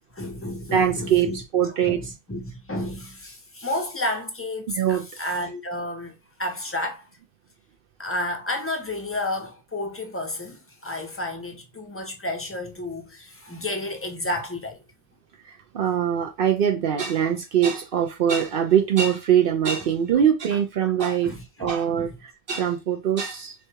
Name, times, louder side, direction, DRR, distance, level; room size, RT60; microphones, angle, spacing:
voice 1, 0.1-1.4 1.9-7.1 8.0-14.8 21.2-22.1, left 1 dB, 15° left, 0.5 m, -31 dB
voice 2, 0.7-2.0 4.8-5.0 15.4-21.3 21.6-23.5, right 9 dB, 65° right, 0.7 m, -22 dB
4.5 x 2.3 x 2.8 m
omnidirectional pair, 1.1 m